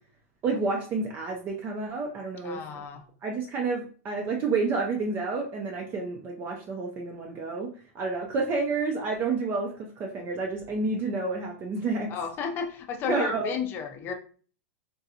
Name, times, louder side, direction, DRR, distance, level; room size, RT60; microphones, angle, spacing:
voice 1, 0.4-2.6 3.2-7.7 7.9-12.1 13.1-13.5, right 3 dB, 30° right, 0.5 m, -29 dB
voice 2, 2.4-3.0 12.1-14.1, left 7 dB, 30° left, 0.5 m, -33 dB
3.8 x 2.3 x 2.7 m
supercardioid pair, 140°, 8 cm